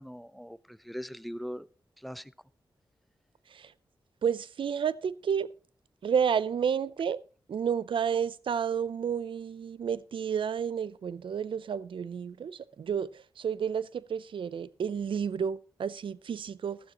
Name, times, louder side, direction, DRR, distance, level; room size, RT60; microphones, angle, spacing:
voice 1, 0.0-1.7 2.0-2.3, equal, ahead, 0.6 m, -40 dB
voice 2, 4.2-5.5 6.0-7.2 7.5-16.8, right 7 dB, 75° right, 0.5 m, -31 dB
15.5 x 12.0 x 3.0 m
cardioid pair, 50°, 9 cm